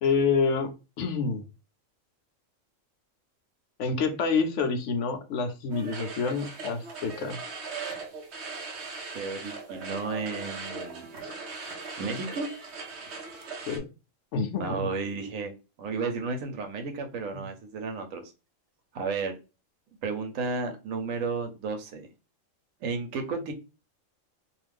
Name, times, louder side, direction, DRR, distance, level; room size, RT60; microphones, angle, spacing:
voice 1, 0.0-0.7 1.0-1.4 3.8-7.4 13.7-13.9 14.3-14.9 17.3-17.4, left 5 dB, 70° left, 0.9 m, -27 dB
sound 1, 5.7-13.8, right 4 dB, 65° right, 0.9 m, -39 dB
voice 2, 9.1-11.1 12.0-12.5 14.6-15.5 15.8-18.2 18.9-19.3 20.0-22.1 22.8-23.5, right 4 dB, 85° right, 1.1 m, -32 dB
2.5 x 2.4 x 3.3 m
omnidirectional pair, 1.3 m